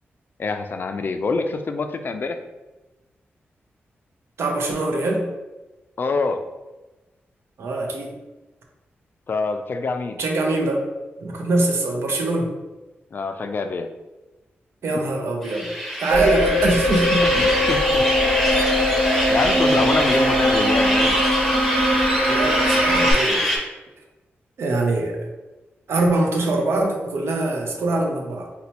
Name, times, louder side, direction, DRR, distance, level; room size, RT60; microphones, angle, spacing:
voice 1, 0.4-2.4 6.0-6.4 9.3-10.2 13.1-13.9 17.2-18.1 19.3-21.2, left 4 dB, 50° left, 7 dB, 0.3 m, -25 dB
voice 2, 4.4-5.3 7.6-8.1 10.2-10.9 11.2-12.5 14.8-15.7 16.0-17.3 22.3-23.5 24.6-25.3 25.9-28.5, right 2 dB, 80° right, 1 dB, 0.6 m, -23 dB
sound 1, 15.4-23.6, equal, ahead, 0.8 m, -24 dB
sound 2, 16.1-23.1, equal, 60° right, 1.1 m, -21 dB
4.1 x 2.2 x 2.8 m, 1.1 s
cardioid pair, 85°, 4 cm